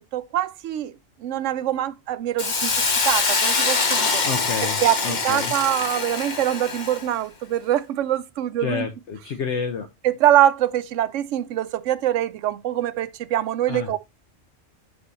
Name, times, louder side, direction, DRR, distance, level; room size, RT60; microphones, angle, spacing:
voice 1, 0.1-0.9 1.2-2.7 3.0-4.2 4.6-8.9 10.0-14.0, right 12 dB, 80° right, 0.9 m, -24 dB
Hiss, 2.4-7.1, left 4 dB, 40° left, 1.1 m, -24 dB
voice 2, 4.2-4.8 5.0-5.5 8.6-9.9 13.7-13.9, left 6 dB, 70° left, 1.1 m, -29 dB
6.3 x 5.4 x 3.1 m
omnidirectional pair, 1.3 m